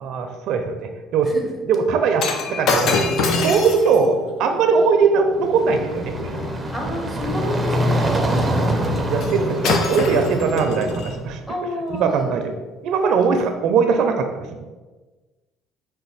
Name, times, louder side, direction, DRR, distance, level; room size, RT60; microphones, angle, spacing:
voice 1, 0.0-1.3 1.7-3.0 3.4-6.3 8.4-11.4 11.9-12.5 12.8-14.6, right 5 dB, 65° right, 5 dB, 0.4 m, -20 dB
voice 2, 1.3-1.6 6.7-8.1 11.5-12.4, left 1 dB, 10° left, 0 dB, 1.1 m, -30 dB
Shatter, 2.2-6.6 9.2-9.4 9.6-11.2 11.9-12.0, left 3 dB, 60° left, 0.5 m, -25 dB
sound 1, 5.3-11.3, equal, 15° right, 0.5 m, -24 dB
5.1 x 2.2 x 4.0 m, 1.2 s
supercardioid pair, 95°, 0 cm